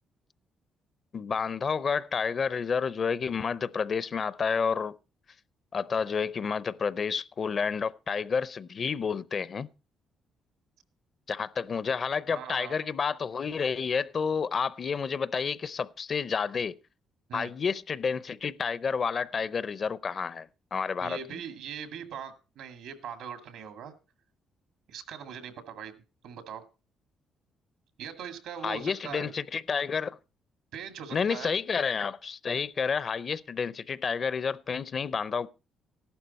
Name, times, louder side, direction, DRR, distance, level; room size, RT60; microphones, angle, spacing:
voice 1, 1.1-5.0 5.7-9.7 11.3-16.8 17.3-21.2 28.6-30.2 31.1-35.5, left 6 dB, 45° left, 0.6 m, -30 dB
voice 2, 12.3-12.7 17.3-17.5 21.0-23.9 24.9-25.9 26.2-26.6 28.0-29.3 30.7-31.6, right 8 dB, 85° right, 2.0 m, -41 dB
14.5 x 11.5 x 4.1 m
cardioid pair, 90°, 0 cm